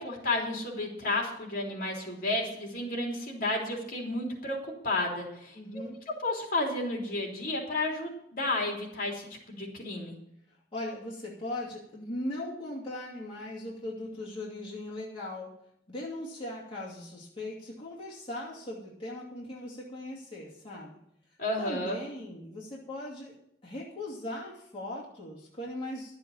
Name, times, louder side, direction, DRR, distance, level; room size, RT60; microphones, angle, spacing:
voice 1, 0.0-4.6 4.8-5.8 6.2-10.1 21.4-22.0, left 2 dB, 50° left, 0 dB, 3.4 m, -32 dB
voice 2, 5.5-6.0 10.5-15.5 15.9-21.0 21.6-23.4 23.6-26.2, left 1 dB, 30° left, -5 dB, 2.7 m, -39 dB
12.5 x 7.6 x 7.2 m, 0.73 s
head